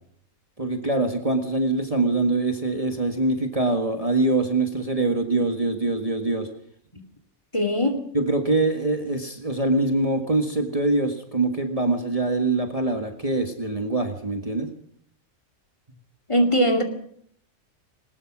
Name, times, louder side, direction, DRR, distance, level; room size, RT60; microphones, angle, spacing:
voice 1, 0.6-6.5 8.1-14.7, right 2 dB, 25° right, 4 dB, 1.8 m, -24 dB
voice 2, 7.5-8.0 16.3-16.8, equal, 20° left, 7 dB, 2.5 m, -20 dB
20.5 x 20.5 x 6.2 m, 0.67 s
omnidirectional pair, 1.4 m